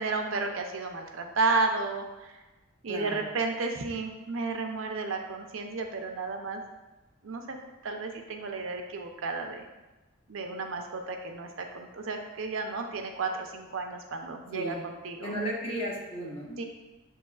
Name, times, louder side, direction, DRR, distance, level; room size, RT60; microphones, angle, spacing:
voice 1, 0.0-2.4 2.8-6.6 7.2-7.6 7.8-9.6 10.3-15.3 16.6-16.7, right 3 dB, 75° right, 3 dB, 0.6 m, -32 dB
voice 2, 2.9-3.3 14.5-14.8 15.2-16.5, right 1 dB, 30° left, -4 dB, 0.9 m, -34 dB
7.3 x 3.0 x 2.3 m, 1.1 s
head